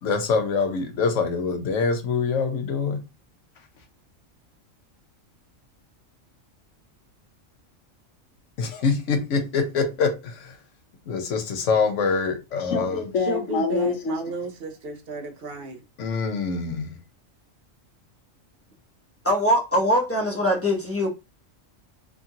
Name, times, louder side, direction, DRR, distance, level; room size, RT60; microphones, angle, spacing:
voice 1, 0.0-3.0 8.6-10.6 11.1-14.2 16.0-17.0, left 4 dB, 75° left, 1.0 m, -25 dB
voice 2, 13.2-15.8, right 2 dB, 55° right, 0.7 m, -33 dB
voice 3, 19.2-21.1, equal, 15° left, 0.7 m, -22 dB
2.9 x 2.4 x 2.7 m
omnidirectional pair, 1.3 m